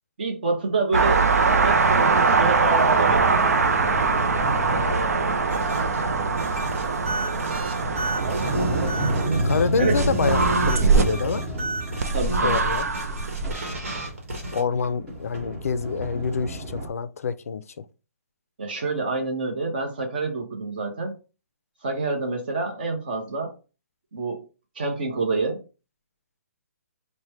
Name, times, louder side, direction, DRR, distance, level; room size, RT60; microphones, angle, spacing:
voice 1, 0.2-1.2 1.5-3.3 4.7-5.4 8.2-9.5 9.8-9.9 12.1-12.6 18.6-21.1 21.8-23.5 24.1-24.4 24.8-25.6, right 3 dB, 40° right, 0.8 m, -28 dB
sound 1, 0.9-9.3 9.9-11.0 12.0-13.5, right 4 dB, 80° right, 0.4 m, -22 dB
Sliding door, 2.9-6.7 7.3-16.9, right 1 dB, 10° right, 0.6 m, -31 dB
sound 2, 5.5-14.6, right 1 dB, 55° right, 1.3 m, -32 dB
voice 2, 9.4-11.4 12.4-12.9 14.5-17.8, left 5 dB, 70° left, 0.4 m, -27 dB
3.1 x 2.1 x 4.2 m
hypercardioid pair, 180°, 8 cm